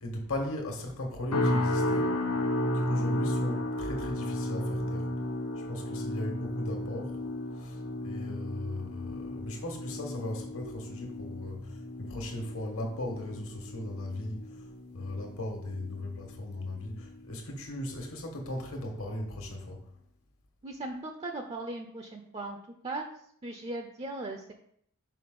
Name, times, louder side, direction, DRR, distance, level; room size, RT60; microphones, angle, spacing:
voice 1, 0.0-2.1 2.8-5.0 5.7-7.1 8.0-11.6 12.0-14.4 14.9-17.0 17.3-19.8, left 1 dB, 65° left, 2 dB, 1.4 m, -37 dB
sound 1, 1.3-16.5 16.9-17.3 17.8-18.0, left 1 dB, 85° left, 0.9 m, -33 dB
voice 2, 20.6-22.6 22.8-23.1 23.4-24.5, right 2 dB, 25° right, 3 dB, 0.5 m, -38 dB
5.6 x 5.0 x 3.8 m, 0.66 s
head